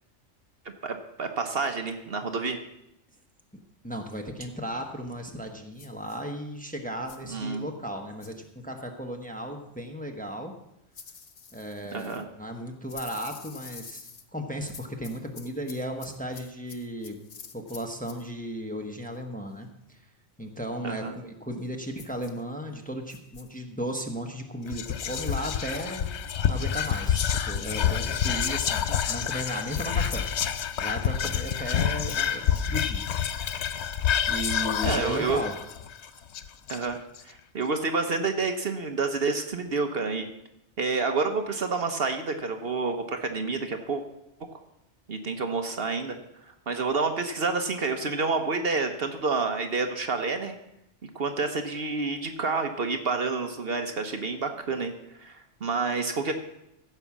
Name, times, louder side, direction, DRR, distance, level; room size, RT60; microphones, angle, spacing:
voice 1, 0.6-2.6 7.3-7.6 11.9-12.3 20.8-21.1 28.9-29.0 34.8-35.4 36.7-37.0 37.2-40.3 40.8-44.0 45.1-46.2 46.4-50.5 51.0-54.9 55.2-56.3, right 4 dB, 55° right, 6 dB, 1.1 m, -29 dB
voice 2, 3.8-10.5 11.5-17.2 17.5-20.0 20.4-26.1 26.5-30.3 30.8-33.0 34.3-35.5, equal, 5° left, 3 dB, 1.1 m, -35 dB
sound 1, 5.8-6.2 7.1-7.3 8.2-8.5 10.9-12.2 12.9-14.3 14.7-18.3 22.0-22.4 23.1-23.5, left 5 dB, 40° left, 0.8 m, -47 dB
Whispering, 24.7-37.2, left 8 dB, 70° left, 0.9 m, -28 dB
15.5 x 5.6 x 7.3 m, 0.84 s
omnidirectional pair, 1.2 m